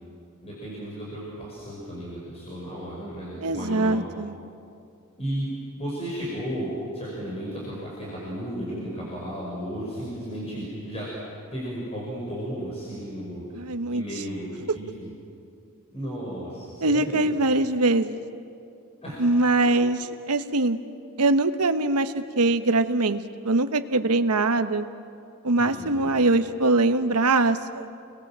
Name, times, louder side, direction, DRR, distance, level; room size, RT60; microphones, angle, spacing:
voice 1, 0.4-4.0 5.2-5.5 5.8-11.1 11.5-13.6 13.9-15.1 15.9-17.3 19.0-19.2 25.6-26.2, equal, 30° left, -5 dB, 5.7 m, -34 dB
voice 2, 3.4-4.4 13.5-14.0 16.8-18.2 19.2-20.0 20.3-20.8 21.2-24.9 25.4-27.9, right 2 dB, 90° right, 9 dB, 1.1 m, -22 dB
29.5 x 22.0 x 7.5 m, 2.5 s
head